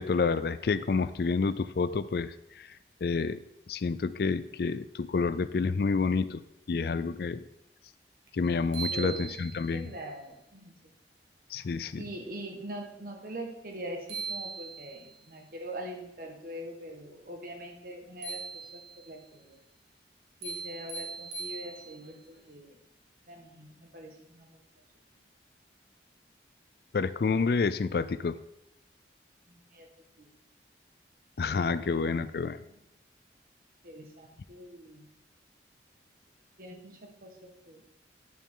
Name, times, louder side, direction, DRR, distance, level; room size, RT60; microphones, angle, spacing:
voice 1, 0.0-2.7 3.0-3.4 3.7-6.4 6.7-7.4 8.3-9.9 11.5-12.0 26.9-28.3 31.4-32.6, left 4 dB, 55° left, 14 dB, 0.4 m, -29 dB
sound 1, 8.3-8.4 8.7-9.8 13.7-13.8 14.1-15.2 18.2-19.1 20.4-22.2, right 5 dB, 70° right, 1.9 m, -39 dB
voice 2, 8.9-9.3 9.7-10.7 12.0-18.4 18.7-19.6 20.4-22.8 23.3-24.5 29.5-29.9 30.2-30.3 31.8-32.4 32.7-32.8 33.8-35.1 36.6-37.8, right 1 dB, 50° right, 3 dB, 1.6 m, -43 dB
10.5 x 7.1 x 3.8 m, 0.88 s
head